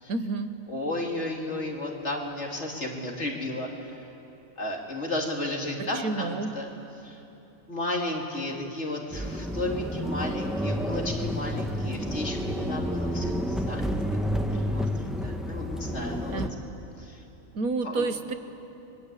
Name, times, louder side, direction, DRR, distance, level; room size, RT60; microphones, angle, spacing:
voice 1, 0.1-0.5 6.0-6.5 16.3-16.5 17.5-18.3, right 3 dB, 90° right, 9 dB, 1.8 m, -29 dB
voice 2, 0.7-4.0 4.6-6.7 7.0-7.2 7.7-14.0 14.4-16.4 17.0-17.2 17.8-18.1, left 1 dB, 50° left, 0 dB, 3.4 m, -33 dB
sound 1, 9.1-16.5, equal, ahead, 1.4 m, -30 dB
29.5 x 23.5 x 8.5 m, 3.0 s
omnidirectional pair, 1.5 m